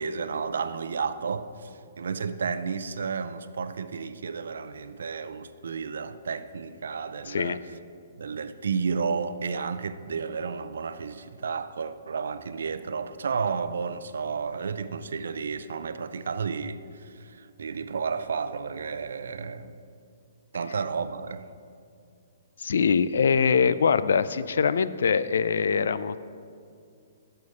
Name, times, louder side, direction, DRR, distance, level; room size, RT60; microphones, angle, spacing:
voice 1, 0.0-7.6 8.2-19.8 20.5-21.5, right 5 dB, 85° right, 0.5 m, -32 dB
voice 2, 7.3-7.6 22.6-26.2, left 6 dB, 70° left, 0.3 m, -23 dB
9.5 x 6.9 x 4.9 m
hypercardioid pair, 180°, 0 cm